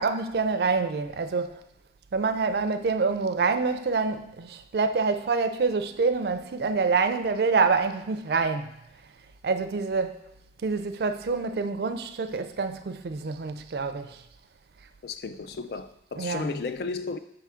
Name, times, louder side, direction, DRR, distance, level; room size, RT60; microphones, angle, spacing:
voice 1, 0.0-1.6 2.1-8.7 9.4-10.2 10.6-14.2 16.2-16.6, right 4 dB, 65° right, 0.4 m, -26 dB
voice 2, 15.0-17.2, left 4 dB, 60° left, 0.4 m, -34 dB
5.5 x 3.6 x 5.6 m
head